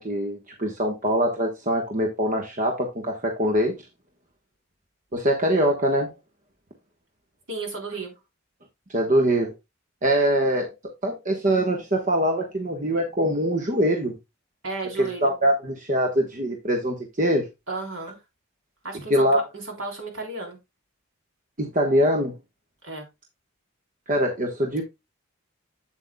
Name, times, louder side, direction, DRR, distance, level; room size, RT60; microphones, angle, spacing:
voice 1, 0.0-3.7 5.1-6.1 8.9-9.5 10.0-14.2 15.0-17.5 19.1-19.4 21.6-22.3 24.1-24.8, right 1 dB, 40° right, 1.2 m, -23 dB
voice 2, 7.5-8.1 14.6-15.3 17.7-18.2 18.8-20.6 22.8-23.1, right 3 dB, 75° right, 3.7 m, -33 dB
8.1 x 7.9 x 2.2 m
head